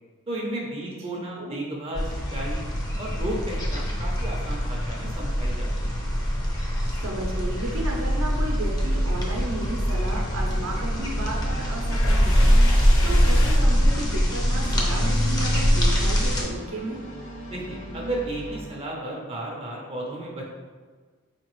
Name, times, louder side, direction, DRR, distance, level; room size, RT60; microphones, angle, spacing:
voice 1, 0.3-2.6 3.0-6.0 17.5-20.4, right 1 dB, 30° right, -1 dB, 0.5 m, -33 dB
voice 2, 1.1-1.6 7.0-12.6 13.0-17.0, right 1 dB, 75° right, -1 dB, 0.6 m, -33 dB
sound 1, 1.9-16.4, equal, 20° left, 0.5 m, -23 dB
sound 2, 10.4-18.6, right 1 dB, 65° left, 1.1 m, -39 dB
sound 3, 10.5-13.5, left 2 dB, 85° left, 0.8 m, -35 dB
4.6 x 2.9 x 3.0 m, 1.5 s
head